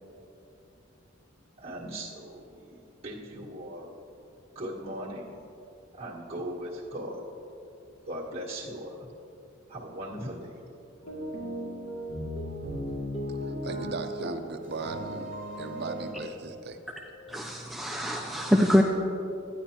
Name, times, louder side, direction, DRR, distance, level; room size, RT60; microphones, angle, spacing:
voice 1, 1.6-3.9 4.5-5.4 5.9-7.2 8.0-9.1 9.7-10.5, equal, 30° right, -8 dB, 1.6 m, -38 dB
sound 1, 11.0-14.4 14.6-16.1, equal, 65° left, 2.5 m, -36 dB
voice 2, 13.4-16.8, right 3 dB, 55° right, 7 dB, 0.6 m, -37 dB
voice 3, 17.3-18.8, equal, ahead, 0 dB, 0.4 m, -24 dB
12.0 x 9.9 x 2.9 m, 2.8 s
head